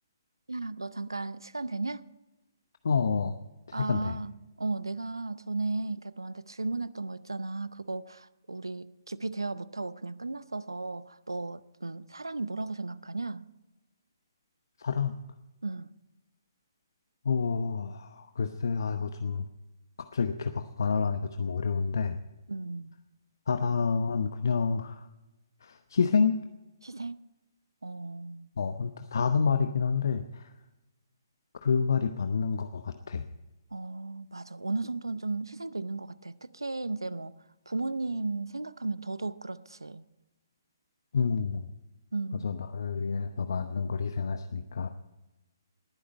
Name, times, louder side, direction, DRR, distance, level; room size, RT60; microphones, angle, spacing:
voice 1, 0.5-2.0 3.7-13.5 15.6-15.9 22.5-23.0 26.8-27.2 27.8-28.5 33.7-37.4 37.7-40.1 42.1-42.5, right 3 dB, 85° right, 0.6 m, -35 dB
voice 2, 2.8-3.3 3.7-4.2 14.8-15.1 17.2-19.4 20.1-22.2 23.5-25.1 25.6-26.3 28.6-30.5 31.6-33.2 41.1-41.6 42.4-44.9, left 5 dB, 65° left, 0.9 m, -28 dB
20.0 x 10.0 x 5.2 m
figure-of-eight pair, 135°, 2 cm